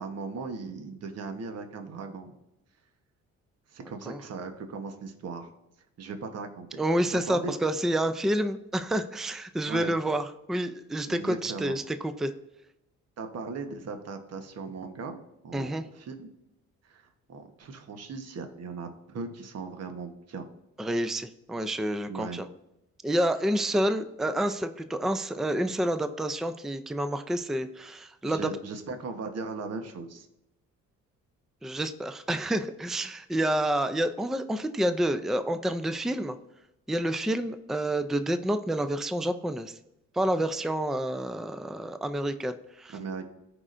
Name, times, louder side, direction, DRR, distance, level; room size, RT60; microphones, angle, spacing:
voice 1, 0.0-2.3 3.7-5.5 6.0-7.5 9.7-9.9 11.1-11.8 13.2-15.2 15.4-16.3 16.8-20.5 22.1-22.4 28.2-30.3 42.9-43.3, right 4 dB, 55° right, 6 dB, 1.2 m, -38 dB
voice 2, 6.8-12.3 15.5-15.8 20.8-22.4 23.0-28.5 31.6-36.4 36.9-39.8 40.1-43.0, right 1 dB, ahead, 10 dB, 0.4 m, -29 dB
15.0 x 5.0 x 2.6 m, 0.88 s
cardioid pair, 90°, 30 cm